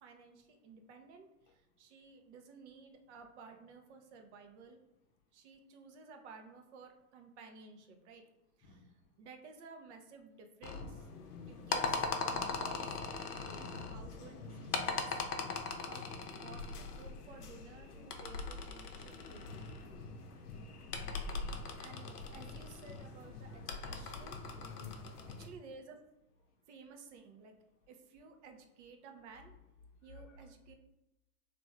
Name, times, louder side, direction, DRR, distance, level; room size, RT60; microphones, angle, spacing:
voice 1, 0.0-4.8 5.3-8.2 8.6-11.1 11.5-13.0 13.5-15.2 15.8-16.1 16.3-20.1 21.5-24.4 25.1-26.0 26.7-27.6 27.9-29.5 30.0-30.7, right 4 dB, 50° right, 4 dB, 0.7 m, -55 dB
sound 1, 10.6-25.5, left 4 dB, 85° left, 0.7 m, -40 dB
voice 2, 12.7-13.8 24.6-25.3 30.1-30.2, left 5 dB, 50° left, 1 dB, 0.9 m, -55 dB
3.1 x 2.5 x 3.4 m, 0.93 s
hypercardioid pair, 105°, 45 cm